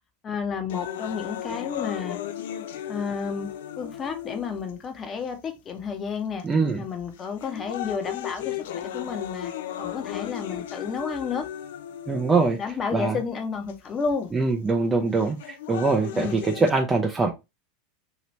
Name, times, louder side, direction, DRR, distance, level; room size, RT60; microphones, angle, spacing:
voice 1, 0.2-2.2 2.9-3.5 3.8-6.4 6.8-9.5 9.8-11.4 12.6-14.3 16.1-16.4, left 5 dB, 30° left, 0.8 m, -31 dB
sound 1, 0.7-4.7 5.5-5.6 6.4-6.7 7.2-12.7 13.7-13.8 15.2-16.7, left 11 dB, 65° left, 0.3 m, -35 dB
voice 2, 6.4-6.8 12.1-12.6 12.9-13.2 14.3-17.3, right 3 dB, 20° right, 0.5 m, -23 dB
2.9 x 2.9 x 3.0 m
figure-of-eight pair, 85°, 0 cm